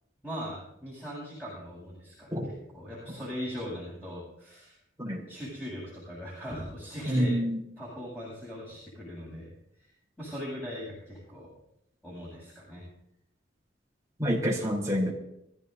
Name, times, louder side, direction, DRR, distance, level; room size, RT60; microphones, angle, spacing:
voice 1, 0.2-4.7 5.3-7.3 7.8-9.5 10.2-11.5 12.0-12.8, equal, 5° left, -9 dB, 8.0 m, -40 dB
voice 2, 7.1-7.6 14.2-15.1, equal, 15° right, -3 dB, 3.8 m, -27 dB
24.0 x 15.0 x 2.8 m, 0.76 s
head